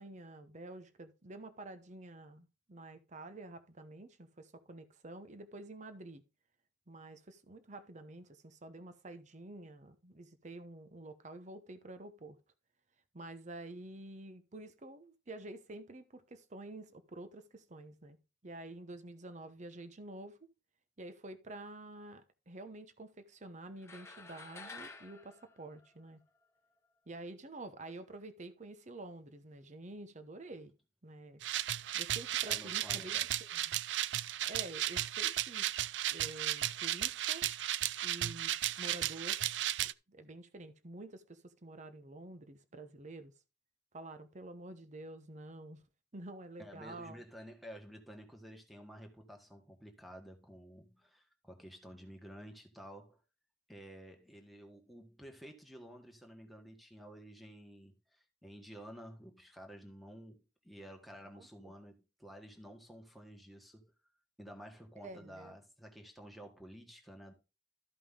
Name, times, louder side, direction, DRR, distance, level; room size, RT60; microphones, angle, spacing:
voice 1, 0.0-6.2 6.9-12.4 13.1-18.2 18.4-20.4 21.0-26.2 27.1-30.7 31.0-31.4 31.9-33.2 33.5-33.7 34.5-35.7 36.1-37.5 38.0-38.5 38.8-39.5 40.1-43.3 43.9-45.8 46.1-47.2 61.3-61.7 65.0-65.5, right 2 dB, 45° right, 0.9 m, -49 dB
sound 1, 23.8-26.4, left 3 dB, 15° left, 1.2 m, -51 dB
sound 2, 31.4-39.9, right 13 dB, 90° right, 0.4 m, -35 dB
voice 2, 32.4-33.3 46.6-53.2 53.7-63.9 64.4-67.3, equal, ahead, 1.6 m, -52 dB
13.0 x 5.3 x 3.8 m
head